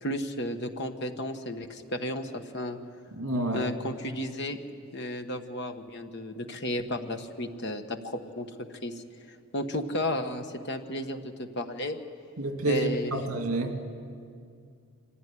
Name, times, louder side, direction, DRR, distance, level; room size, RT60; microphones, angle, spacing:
voice 1, 0.0-2.8 3.5-4.6 4.9-8.5 8.8-12.0 12.7-13.2, left 1 dB, 50° left, 6 dB, 1.3 m, -33 dB
voice 2, 3.2-3.6 12.4-13.8, right 1 dB, 70° right, 4 dB, 2.6 m, -29 dB
25.0 x 15.5 x 9.9 m, 2.2 s
head